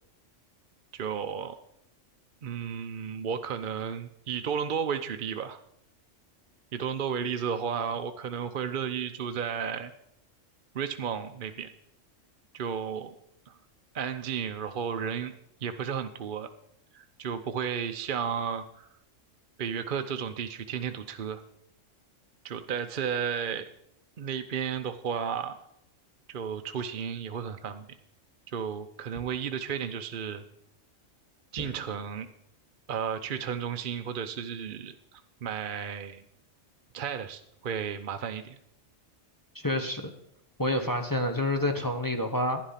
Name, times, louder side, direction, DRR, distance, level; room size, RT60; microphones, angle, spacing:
voice 1, 0.9-1.6 2.4-5.6 6.7-9.9 10.7-11.7 12.5-13.1 13.5-13.6 13.9-15.3 15.6-16.5 16.9-18.6 19.6-21.4 22.4-23.7 24.2-25.6 26.3-27.8 28.5-30.4 31.5-32.3 32.9-36.2 36.9-38.6, right 7 dB, 50° right, 8 dB, 0.7 m, -33 dB
sound 1, 31.6-32.4, equal, 10° right, 1.0 m, -47 dB
voice 2, 39.6-40.1 40.6-42.6, left 1 dB, 15° left, 3 dB, 1.0 m, -28 dB
12.0 x 10.5 x 5.7 m, 0.76 s
omnidirectional pair, 1.3 m